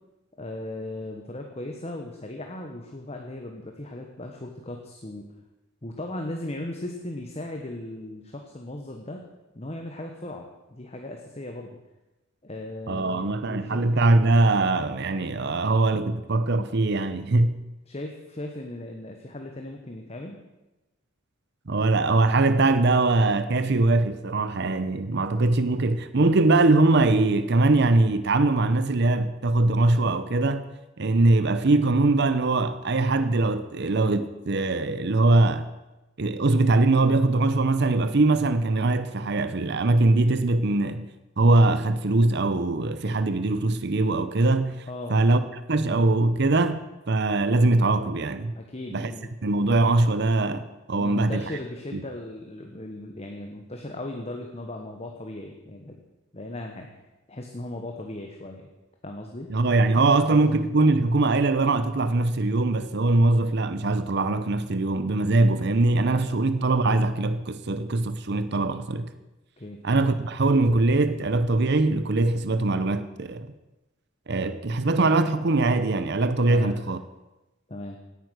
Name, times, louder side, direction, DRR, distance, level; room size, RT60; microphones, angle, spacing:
voice 1, 0.4-5.3 5.8-9.2 9.5-11.8 12.4-13.8 17.9-20.4 44.9-45.2 48.5-49.3 51.0-56.0 56.3-56.9 57.3-58.7 59.0-59.5 60.0-60.2 66.3-66.4 69.6-69.8 76.5-76.8 77.7-78.0, left 1 dB, 30° left, 1.3 m, -37 dB
voice 2, 12.9-17.5 21.7-30.7 31.0-35.7 36.2-41.1 41.4-44.8 45.1-45.4 45.7-48.5 48.9-49.1 49.4-51.5 51.9-52.0 59.5-69.1 69.8-73.5 74.3-77.0, right 2 dB, 55° right, 0.7 m, -22 dB
17.5 x 9.3 x 6.4 m
head